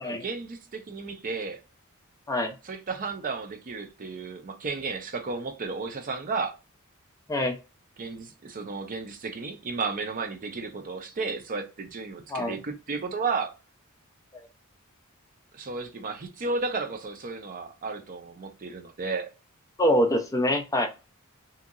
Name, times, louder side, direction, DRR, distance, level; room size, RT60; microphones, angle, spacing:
voice 1, 0.0-1.6 2.6-6.5 8.0-13.5 15.5-19.3, right 4 dB, 40° right, 0.5 m, -33 dB
voice 2, 19.8-20.9, equal, 15° left, 0.4 m, -24 dB
2.8 x 2.7 x 2.4 m
head